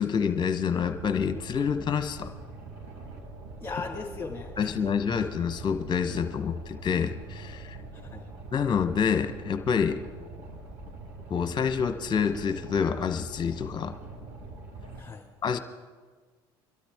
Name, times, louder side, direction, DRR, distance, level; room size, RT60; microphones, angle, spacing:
voice 1, 0.0-2.3 4.6-7.8 8.5-10.0 11.3-13.9 15.4-15.6, left 6 dB, 35° left, 8 dB, 1.1 m, -27 dB
Boat Water vehicle, 0.7-15.0, right 3 dB, 65° right, 4.0 m, -43 dB
voice 2, 3.6-4.9 7.9-8.3 14.9-15.3, left 4 dB, 15° left, -3 dB, 2.2 m, -38 dB
24.5 x 12.5 x 3.6 m, 1.4 s
hypercardioid pair, 70°, 13 cm